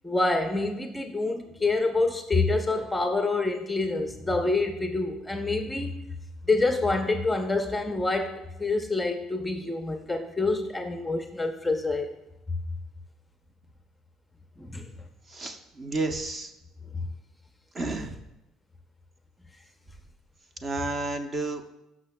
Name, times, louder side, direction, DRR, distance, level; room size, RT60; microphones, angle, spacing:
voice 1, 0.0-5.9 6.5-12.1 14.6-14.9, left 3 dB, 10° left, 0.6 m, -27 dB
voice 2, 15.3-16.5 17.7-18.2 20.6-21.6, right 2 dB, 30° right, 0.7 m, -31 dB
16.5 x 6.1 x 2.2 m
cardioid pair, 130°, 0 cm